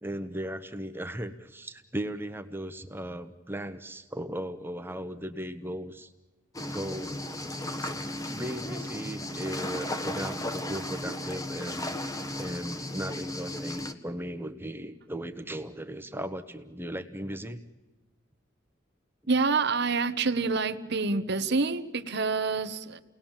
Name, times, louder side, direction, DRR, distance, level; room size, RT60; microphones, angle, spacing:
voice 1, 0.0-6.1 6.7-7.2 7.8-7.9 8.3-12.0 12.4-17.6, right 1 dB, 10° right, 8 dB, 1.1 m, -37 dB
sound 1, 6.5-13.9, left 1 dB, 15° left, 1.4 m, -35 dB
voice 2, 19.3-23.0, right 4 dB, 55° right, 11 dB, 1.2 m, -27 dB
30.0 x 19.5 x 7.4 m, 1.2 s
head